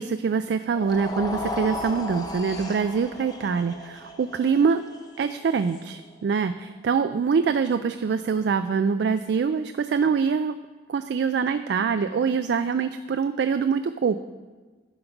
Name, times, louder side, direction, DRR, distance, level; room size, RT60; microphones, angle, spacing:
voice 1, 0.0-4.8 5.2-10.6 10.9-14.2, right 5 dB, 65° right, 10 dB, 0.3 m, -24 dB
sound 1, 0.7-7.0, left 1 dB, 20° left, 0.7 m, -36 dB
11.0 x 5.2 x 5.8 m, 1.4 s
head